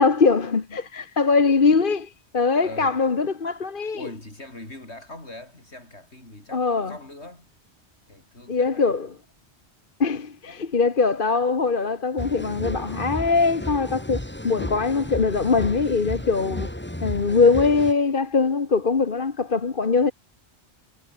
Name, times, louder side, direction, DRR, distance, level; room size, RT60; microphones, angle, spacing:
voice 1, 0.0-4.1 6.5-6.9 8.5-9.1 10.0-16.7 17.0-20.1, left 4 dB, 50° left, 1.6 m, -22 dB
voice 2, 2.5-3.0 4.0-7.5 8.1-8.9, left 2 dB, 75° left, 6.3 m, -42 dB
sound 1, 12.2-17.9, left 1 dB, 10° left, 2.2 m, -33 dB
omnidirectional pair, 1.1 m